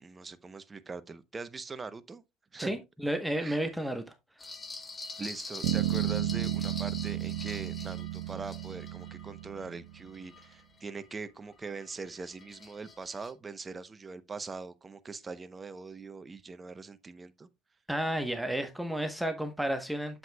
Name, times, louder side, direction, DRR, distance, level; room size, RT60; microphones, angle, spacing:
voice 1, 0.0-2.2 2.5-2.7 3.4-3.6 5.2-17.5, right 4 dB, 25° right, 0.8 m, -42 dB
voice 2, 2.6-4.0 17.9-20.2, right 1 dB, ahead, 1.1 m, -32 dB
sound 1, 4.4-11.1 11.5-13.3, left 3 dB, 25° left, 1.5 m, -45 dB
Bass guitar, 5.6-10.0, right 13 dB, 90° right, 0.9 m, -33 dB
7.8 x 7.7 x 2.3 m
supercardioid pair, 95°, 0 cm